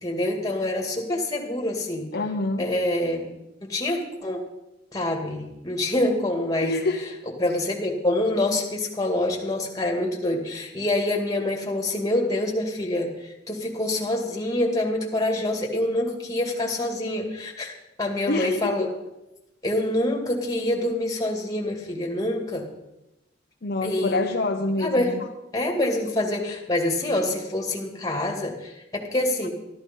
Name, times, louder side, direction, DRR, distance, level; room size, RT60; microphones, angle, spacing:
voice 1, 0.0-2.1 2.6-3.3 3.6-4.4 4.9-6.8 7.4-17.7 18.0-18.9 19.6-22.6 23.8-24.2 24.8-25.1 25.5-29.5, left 1 dB, 20° left, 1 dB, 2.3 m, -26 dB
voice 2, 2.1-2.7 6.6-7.1 18.3-18.7 23.6-25.3, left 2 dB, 55° left, 4 dB, 0.8 m, -26 dB
13.0 x 12.5 x 5.5 m, 0.92 s
head